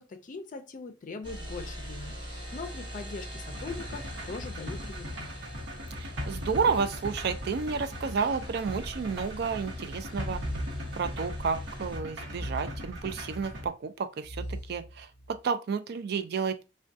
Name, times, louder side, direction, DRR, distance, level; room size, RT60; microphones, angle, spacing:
voice 1, 0.0-5.3, left 4 dB, 45° left, 0.4 m, -41 dB
sound 1, 1.2-12.0, equal, 30° right, 0.8 m, -44 dB
sound 2, 3.5-13.7, left 1 dB, 85° right, 0.9 m, -39 dB
voice 2, 6.0-10.4 11.0-16.6, right 5 dB, 60° right, 0.4 m, -31 dB
sound 3, 8.7-9.6 10.3-11.6 12.3-13.6 14.2-15.4, equal, 5° left, 0.8 m, -41 dB
3.4 x 2.2 x 2.6 m
head